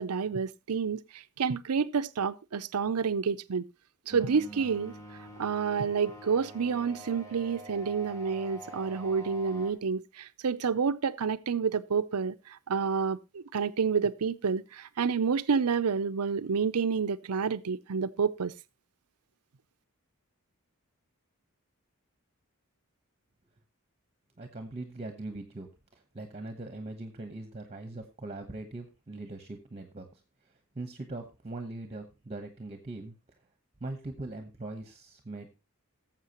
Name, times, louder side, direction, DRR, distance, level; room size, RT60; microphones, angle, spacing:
voice 1, 0.0-3.7 4.1-4.9 5.4-18.5, right 5 dB, 90° right, 0.6 m, -29 dB
sound 1, 4.1-9.7, equal, 15° left, 2.5 m, -46 dB
voice 2, 24.4-30.2 30.7-33.1 33.8-35.5, right 2 dB, 30° right, 1.1 m, -41 dB
18.0 x 7.4 x 3.0 m
head